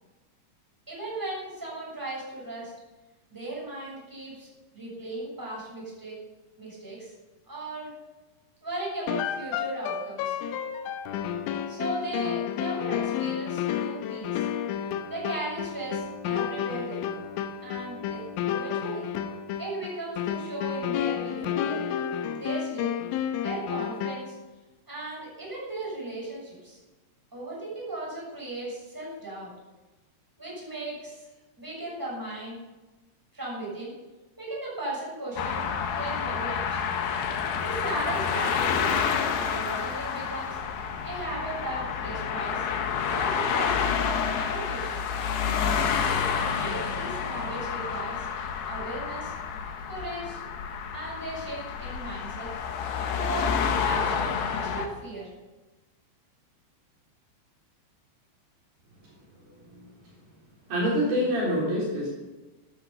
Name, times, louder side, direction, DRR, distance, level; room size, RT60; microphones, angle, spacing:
voice 1, 0.9-2.7 3.3-6.2 6.6-7.1 7.5-7.9 8.6-10.4 11.7-14.4 15.1-17.2 17.6-18.2 18.5-19.1 19.6-21.8 22.3-22.9 23.4-24.3 24.9-26.8 27.3-29.5 30.4-31.3 31.6-32.6 33.3-33.9 34.4-35.6 35.9-36.9 37.6-39.0 39.5-40.6 41.0-42.7 43.1-43.9 44.4-45.0 46.2-48.3 48.7-49.3 49.9-50.4 50.9-52.5 53.1-55.3, right 2 dB, 5° right, -5 dB, 6.7 m, -36 dB
sound 1, 9.1-24.4, left 9 dB, 90° left, 3.3 m, -31 dB
sound 2, 35.4-54.9, left 6 dB, 70° left, 3.0 m, -29 dB
voice 2, 59.5-60.1 60.7-62.1, equal, 55° right, -6 dB, 5.1 m, -27 dB
13.0 x 12.5 x 7.1 m, 1.1 s
omnidirectional pair, 5.4 m